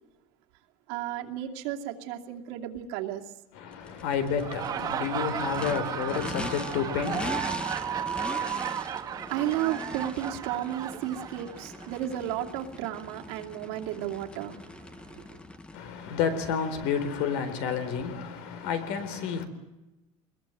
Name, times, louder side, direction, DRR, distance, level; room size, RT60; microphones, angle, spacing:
voice 1, 0.9-3.3 8.3-15.4, right 12 dB, 75° right, 2.7 m, -34 dB
voice 2, 3.5-7.5 15.7-19.5, left 7 dB, 70° left, 4.1 m, -30 dB
Race car auto racing / Idling / Accelerating revving vroom, 3.7-15.8, left 2 dB, 10° left, 1.0 m, -41 dB
Laughter, 4.3-11.9, right 9 dB, 30° right, 1.6 m, -34 dB
24.0 x 21.5 x 9.2 m
cardioid pair, 170°, 13 cm